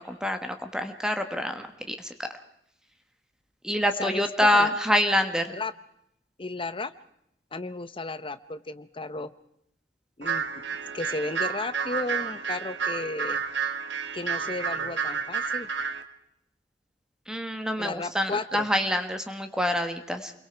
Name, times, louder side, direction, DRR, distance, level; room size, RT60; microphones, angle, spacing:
voice 1, 0.0-2.3 3.6-5.5 17.3-20.3, left 1 dB, 5° right, 7 dB, 1.3 m, -26 dB
voice 2, 4.0-4.7 5.5-5.7 6.4-6.9 7.5-9.3 10.2-10.5 10.9-13.4 14.1-15.7 17.8-18.7, left 3 dB, 30° left, 13 dB, 0.9 m, -34 dB
sound 1, 10.2-16.0, right 6 dB, 80° right, 1.6 m, -30 dB
29.0 x 22.5 x 4.6 m, 0.77 s
head